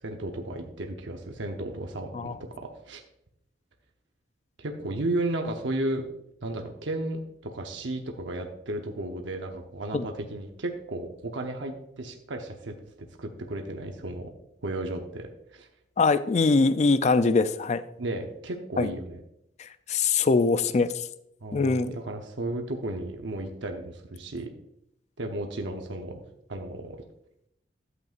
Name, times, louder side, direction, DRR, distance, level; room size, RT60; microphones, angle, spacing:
voice 1, 0.0-3.0 4.6-6.0 6.4-12.7 13.2-14.3 14.6-15.7 18.0-19.2 21.4-24.5 25.2-26.2 26.5-27.0, right 1 dB, 80° right, 3 dB, 0.8 m, -34 dB
voice 2, 16.0-17.8 18.8-18.9 19.6-20.9 21.5-22.0, left 4 dB, 35° left, 13 dB, 0.4 m, -23 dB
12.0 x 8.0 x 2.5 m, 0.78 s
head